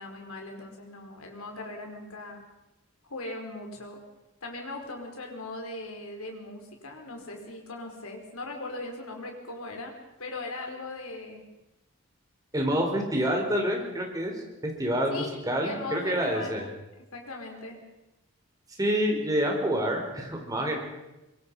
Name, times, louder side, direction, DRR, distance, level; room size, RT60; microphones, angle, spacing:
voice 1, 0.0-2.4 3.1-4.0 4.4-9.9 10.2-11.4 15.1-15.3 15.6-16.6 17.1-17.8, left 2 dB, 85° left, 2 dB, 5.0 m, -39 dB
voice 2, 12.5-14.4 14.6-16.7 18.8-20.8, equal, 15° right, 1 dB, 4.5 m, -27 dB
25.0 x 23.0 x 5.6 m, 0.99 s
head